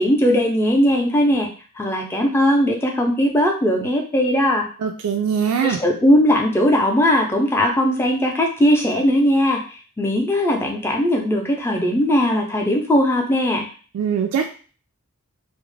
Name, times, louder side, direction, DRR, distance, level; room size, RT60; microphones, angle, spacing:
voice 1, 0.0-1.5 1.8-4.7 5.6-13.7, equal, 10° left, 1 dB, 0.4 m, -19 dB
voice 2, 4.8-5.8 13.9-14.5, right 7 dB, 85° right, 5 dB, 0.3 m, -21 dB
2.4 x 2.0 x 3.1 m, 0.38 s
head